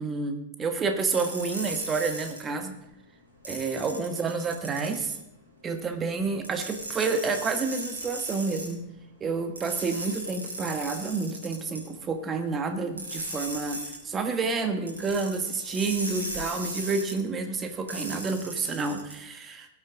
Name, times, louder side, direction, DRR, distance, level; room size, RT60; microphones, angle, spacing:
voice 1, 0.0-2.7 3.4-5.2 5.6-8.8 9.2-13.8 14.0-19.7, right 4 dB, 20° right, 7 dB, 1.4 m, -29 dB
sound 1, 1.0-2.4 3.4-5.1 6.4-8.7 9.6-11.8 13.0-14.0 14.9-17.1 17.9-19.1, right 1 dB, 80° right, 4.2 m, -37 dB
18.5 x 8.4 x 3.8 m, 0.84 s
figure-of-eight pair, 90°, 0 cm